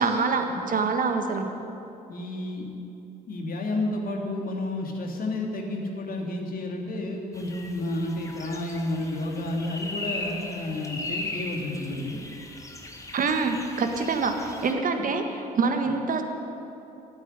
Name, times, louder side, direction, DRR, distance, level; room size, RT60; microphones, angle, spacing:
voice 1, 0.0-1.5 13.1-16.2, right 4 dB, 40° right, 5 dB, 1.7 m, -25 dB
voice 2, 2.1-2.7 3.3-12.2 14.9-15.1, left 2 dB, 45° left, 1 dB, 2.8 m, -31 dB
sound 1, 7.3-14.7, left 2 dB, 15° left, 1.9 m, -38 dB
13.5 x 9.5 x 9.2 m, 2.8 s
figure-of-eight pair, 50°, 20 cm